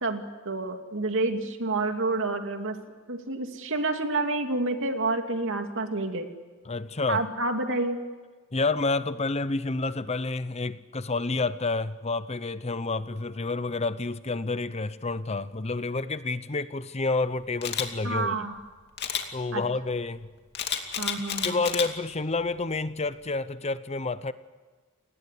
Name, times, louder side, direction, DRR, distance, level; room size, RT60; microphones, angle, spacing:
voice 1, 0.0-2.8 3.1-6.3 7.1-8.0 18.0-18.6 19.5-19.6 21.0-21.6, right 2 dB, 60° right, 5 dB, 2.6 m, -29 dB
voice 2, 6.7-7.2 8.5-18.5 19.3-20.3 21.4-24.3, left 3 dB, 30° left, 14 dB, 0.7 m, -29 dB
Camera, 17.6-17.9 19.0-19.2 20.5-21.9 22.4-22.6, left 8 dB, 50° left, 2.6 m, -30 dB
30.0 x 19.0 x 8.4 m, 1.4 s
head